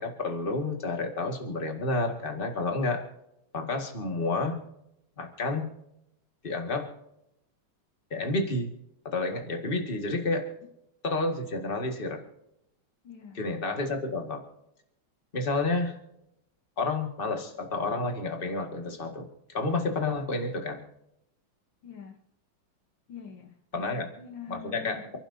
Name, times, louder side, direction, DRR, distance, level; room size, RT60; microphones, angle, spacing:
voice 1, 0.0-3.0 3.5-4.6 5.2-5.7 6.4-6.9 8.1-8.7 9.0-10.5 11.0-12.2 13.3-14.4 15.3-15.9 16.8-20.8 23.7-24.1 24.5-25.2, left 2 dB, 25° left, 2.1 m, -30 dB
voice 2, 13.0-13.4 21.8-22.2 23.1-25.0, left 6 dB, 65° left, 1.8 m, -45 dB
28.5 x 11.5 x 2.8 m
omnidirectional pair, 2.3 m